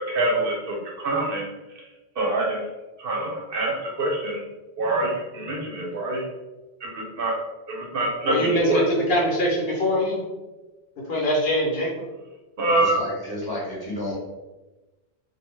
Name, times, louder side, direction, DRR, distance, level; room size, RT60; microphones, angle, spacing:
voice 1, 0.1-1.5 2.2-2.6 3.0-4.4 4.8-6.2 6.8-7.3 7.7-8.8 12.6-13.0, right 2 dB, 65° right, -2 dB, 0.7 m, -25 dB
voice 2, 8.3-10.2 11.1-11.9, equal, 65° left, -3 dB, 0.9 m, -23 dB
voice 3, 12.9-14.1, left 1 dB, 25° left, -7 dB, 0.8 m, -31 dB
2.2 x 2.1 x 3.0 m, 1.1 s
omnidirectional pair, 1.1 m